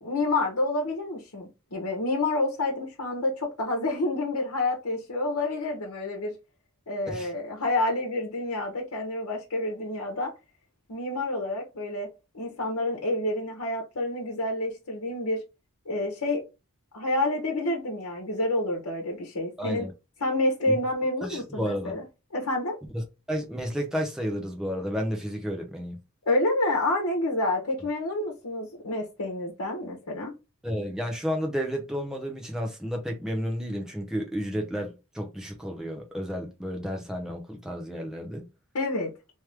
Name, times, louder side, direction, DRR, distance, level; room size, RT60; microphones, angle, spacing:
voice 1, 0.0-6.3 6.9-10.3 10.9-12.1 12.3-15.4 15.8-16.4 16.9-19.9 20.2-22.0 22.3-22.8 26.3-30.3 38.7-39.1, left 2 dB, 85° left, 1.0 m, -28 dB
voice 2, 19.6-19.9 20.7-20.8 21.2-21.9 22.9-26.0 30.6-38.4, equal, 5° right, 0.8 m, -32 dB
3.2 x 3.1 x 3.3 m
head